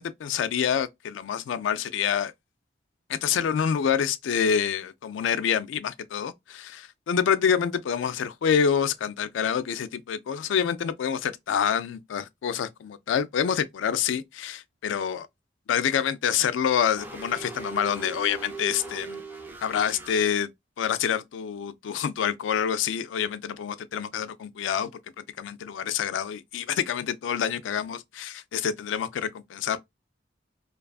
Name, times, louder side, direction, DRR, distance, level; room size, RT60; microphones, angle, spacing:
voice 1, 0.0-2.3 3.1-15.3 15.7-19.2 19.6-20.5 20.8-24.9 25.2-29.8, left 8 dB, 85° left, 0.3 m, -27 dB
sound 1, 17.0-20.2, right 4 dB, 10° right, 0.4 m, -39 dB
2.5 x 2.3 x 2.3 m
head